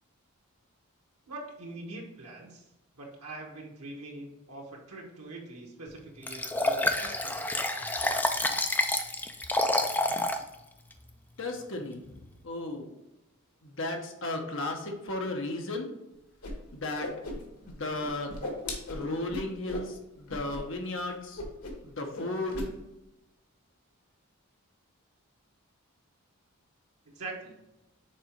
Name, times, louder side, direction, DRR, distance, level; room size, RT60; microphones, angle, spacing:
voice 1, 1.3-2.7 2.9-7.4 27.0-27.5, right 2 dB, 90° right, -1 dB, 1.3 m, -43 dB
Liquid, 6.3-10.4 10.9-11.0, left 2 dB, 10° left, 0.3 m, -28 dB
voice 2, 11.4-12.9 13.6-15.9 16.7-17.1 17.7-18.4 18.9-21.4 21.8-22.7, left 2 dB, 55° left, 3 dB, 1.0 m, -35 dB
Whoosh swoosh swish, 16.4-16.5 16.8-17.7 18.0-19.9 20.3-20.6 20.8-21.0 21.4-21.9 22.1-22.7, left 2 dB, 90° left, 1.4 m, -37 dB
6.6 x 3.9 x 4.5 m, 0.94 s
head